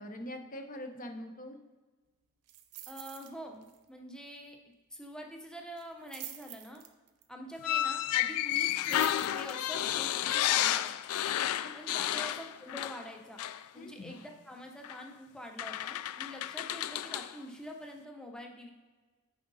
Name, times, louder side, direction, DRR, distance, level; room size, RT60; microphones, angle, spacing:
voice 1, 0.0-1.6 11.6-12.0 13.8-14.1, left 1 dB, 35° left, 5 dB, 0.8 m, -43 dB
sound 1, 2.5-3.3 3.6-3.9 4.2-4.3 5.8-7.2 8.5-9.8 10.3-10.4, right 12 dB, 90° right, 0.7 m, -47 dB
voice 2, 2.9-4.6 4.9-6.8 7.3-10.9 11.7-13.4 13.7-18.7, equal, 5° left, 2 dB, 0.8 m, -46 dB
sound 2, 7.6-13.1 13.4-13.6 14.8-15.0 15.6-17.3, left 12 dB, 75° left, 0.3 m, -31 dB
9.2 x 4.9 x 4.0 m, 1.3 s
head